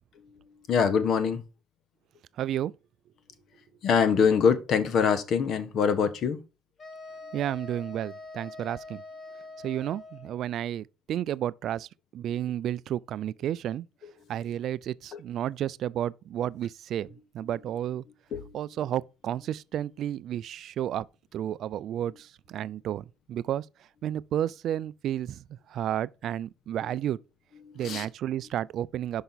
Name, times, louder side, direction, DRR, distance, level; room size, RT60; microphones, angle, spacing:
voice 1, 0.7-1.4 3.8-6.4 15.1-15.2 18.3-18.6 27.6-28.1, left 6 dB, 55° left, 1.1 m, -24 dB
voice 2, 2.4-2.7 7.3-9.0 9.6-13.9 14.3-17.1 17.3-18.0 18.5-21.1 21.3-23.7 24.0-25.4 25.7-27.2 27.8-29.2, right 11 dB, 55° right, 0.3 m, -32 dB
sound 1, 6.8-10.5, left 3 dB, 30° left, 1.9 m, -44 dB
5.6 x 5.6 x 4.0 m
supercardioid pair, 100°, 0 cm